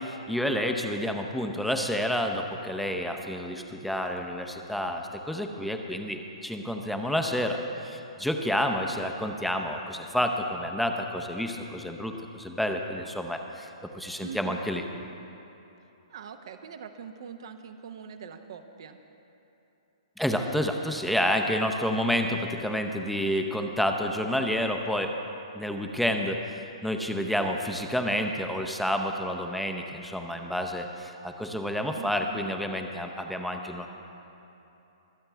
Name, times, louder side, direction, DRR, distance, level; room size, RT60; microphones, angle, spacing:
voice 1, 0.0-13.7 13.9-14.8 20.2-25.2 25.5-33.9, equal, ahead, 3 dB, 0.7 m, -29 dB
voice 2, 14.2-14.7 16.1-19.0 32.0-32.5, right 7 dB, 55° right, 8 dB, 0.8 m, -42 dB
24.5 x 8.8 x 3.4 m, 3.0 s
figure-of-eight pair, 120°, 3 cm